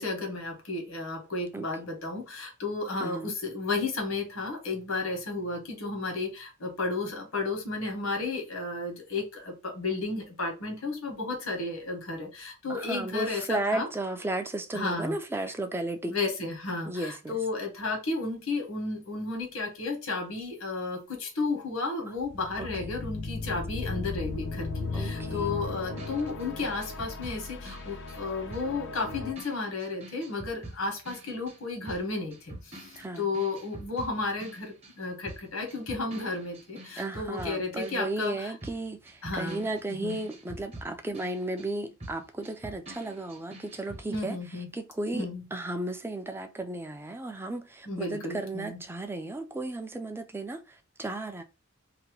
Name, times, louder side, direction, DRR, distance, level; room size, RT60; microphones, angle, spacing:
voice 1, 0.0-13.9 14.7-15.1 16.1-38.5 39.2-40.2 44.1-44.7 45.1-45.4 47.9-48.8, left 3 dB, 85° left, 1.3 m, -33 dB
voice 2, 3.0-3.3 12.7-16.1 16.9-17.4 22.6-22.9 24.9-25.5 33.0-33.3 37.0-44.4 44.7-51.4, right 2 dB, 10° right, 0.4 m, -34 dB
sound 1, 22.2-29.3, left 3 dB, 60° left, 0.5 m, -36 dB
sound 2, 26.0-35.0 35.2-44.2, right 1 dB, 30° right, 0.8 m, -46 dB
2.8 x 2.1 x 3.0 m
head